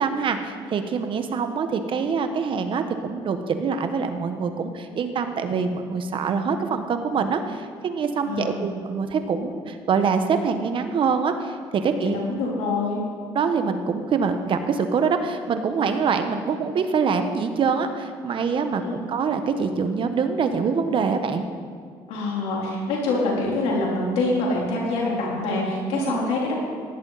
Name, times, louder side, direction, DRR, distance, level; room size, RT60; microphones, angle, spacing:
voice 1, 0.0-12.2 13.3-21.4 25.9-26.2, right 5 dB, 55° right, 7 dB, 1.3 m, -25 dB
voice 2, 8.2-8.7 12.0-13.0 18.8-19.0 22.1-26.5, left 2 dB, 90° left, -3 dB, 3.7 m, -25 dB
16.5 x 11.0 x 4.2 m, 2.2 s
supercardioid pair, 80°, 10 cm